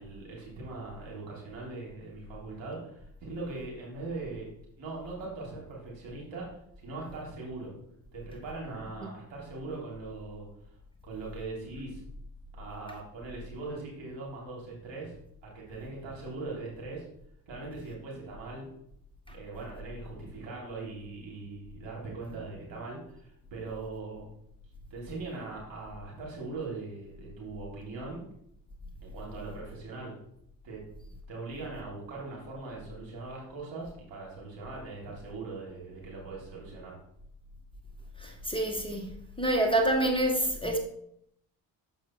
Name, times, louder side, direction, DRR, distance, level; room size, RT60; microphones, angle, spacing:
voice 1, 0.0-4.5 4.8-7.7 8.1-10.5 11.0-12.0 12.5-15.1 15.4-17.0 17.5-18.7 19.3-24.3 24.9-28.2 29.0-30.1 30.6-30.8 31.3-37.0, right 3 dB, 60° right, 3.3 m, -40 dB
voice 2, 38.2-39.1 39.4-40.8, right 1 dB, 10° left, 1.3 m, -27 dB
6.9 x 5.4 x 4.6 m
figure-of-eight pair, 45°, 50 cm